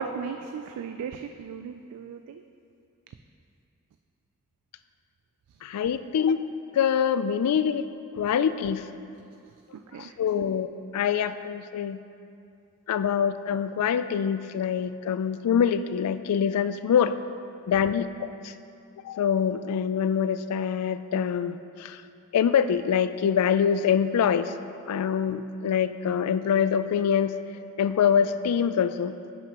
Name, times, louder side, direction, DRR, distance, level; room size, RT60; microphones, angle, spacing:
voice 1, 0.0-2.4 9.7-10.2, right 6 dB, 85° right, 7 dB, 0.3 m, -35 dB
voice 2, 5.6-6.4 6.7-7.9 8.2-8.9 10.0-12.0 12.9-17.2 17.7-18.5 19.0-22.0 22.3-24.5 24.9-27.4 27.8-29.1, left 7 dB, 90° left, 12 dB, 0.3 m, -25 dB
10.0 x 6.3 x 2.9 m, 2.5 s
head